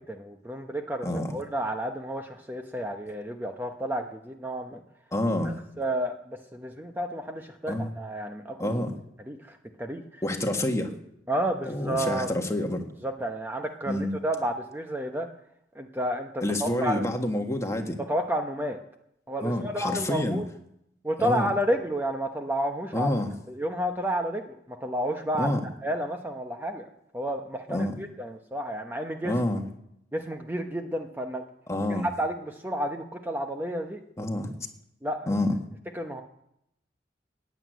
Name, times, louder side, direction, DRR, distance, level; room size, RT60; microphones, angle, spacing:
voice 1, 0.1-4.8 5.4-8.8 9.3-10.2 11.3-12.3 13.0-15.3 15.7-17.1 18.0-18.8 19.3-20.4 21.0-23.1 23.5-26.9 27.1-29.3 30.1-31.4 32.0-34.0 35.0-35.4 35.9-36.2, right 1 dB, 10° right, 4 dB, 0.9 m, -31 dB
voice 2, 1.0-1.4 5.1-5.6 7.7-7.9 8.6-8.9 10.2-11.0 11.6-12.9 13.9-14.1 16.4-18.0 19.4-20.4 21.2-21.5 22.9-23.3 25.4-25.6 27.7-28.0 29.2-29.6 31.7-32.1 34.2-34.5 35.3-35.6, left 1 dB, 15° left, 4 dB, 1.6 m, -28 dB
15.5 x 9.4 x 9.3 m, 0.79 s
head